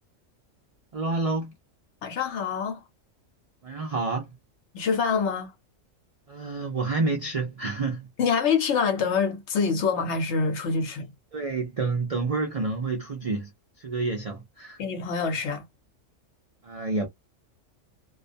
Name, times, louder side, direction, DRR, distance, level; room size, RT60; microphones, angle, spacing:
voice 1, 0.9-1.5 3.6-4.3 6.3-8.1 11.3-13.5 13.8-14.8 16.6-17.1, right 3 dB, 65° right, 0.3 m, -29 dB
voice 2, 2.0-2.8 4.7-5.5 8.2-11.1 14.8-15.6, left 5 dB, 65° left, 0.9 m, -25 dB
2.3 x 2.1 x 2.5 m
omnidirectional pair, 1.4 m